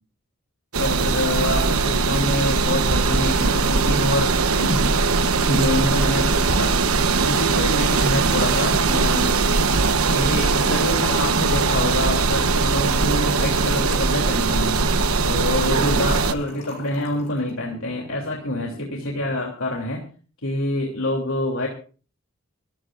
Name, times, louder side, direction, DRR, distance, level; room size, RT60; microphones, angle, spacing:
sound 1, 0.7-16.3, right 4 dB, 85° right, 1.1 m, -20 dB
voice 1, 0.8-4.9 5.4-6.7 7.2-9.4 10.1-14.8 15.2-20.0 20.4-21.7, left 1 dB, 70° left, 0 dB, 3.0 m, -26 dB
sound 2, 2.5-19.4, equal, 30° right, 6.4 m, -41 dB
Trickle dribble / Fill (with liquid), 3.7-3.8 4.0-4.1 4.3-17.4, left 4 dB, 35° left, 5.9 m, -39 dB
25.0 x 14.0 x 2.6 m, 0.38 s
head